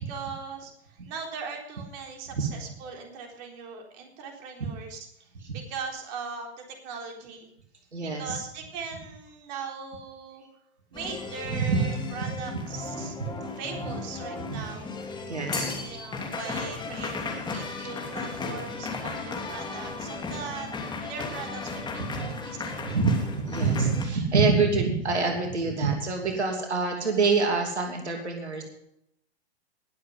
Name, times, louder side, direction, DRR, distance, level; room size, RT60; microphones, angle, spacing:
voice 1, 0.1-7.5 8.0-10.5 10.9-13.1 13.5-15.2 15.7-22.9, right 5 dB, 45° right, 2 dB, 3.9 m, -40 dB
voice 2, 7.9-8.4 11.4-11.8 13.2-13.3 14.5-14.6 15.3-15.7 17.5-17.6 22.1-22.5 22.8-28.6, right 4 dB, 90° right, 2 dB, 2.8 m, -26 dB
sound 1, 10.9-24.0, left 4 dB, 15° left, 2.9 m, -35 dB
20.5 x 7.8 x 5.4 m, 0.76 s
hypercardioid pair, 115°, 33 cm